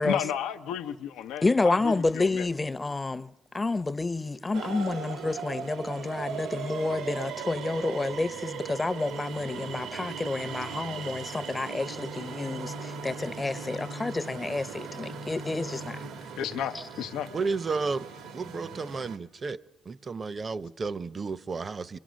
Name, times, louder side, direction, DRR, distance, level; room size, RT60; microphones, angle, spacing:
voice 1, 0.0-2.5 16.4-17.3, left 9 dB, 90° left, 0.7 m, -33 dB
voice 2, 1.4-16.1, left 3 dB, 20° left, 0.7 m, -29 dB
sound 1, 4.5-19.2, right 6 dB, 90° right, 1.4 m, -39 dB
voice 3, 17.3-18.1 18.3-19.6 19.9-22.0, right 4 dB, 35° right, 0.7 m, -32 dB
25.5 x 24.0 x 6.3 m
cardioid pair, 90°, 0 cm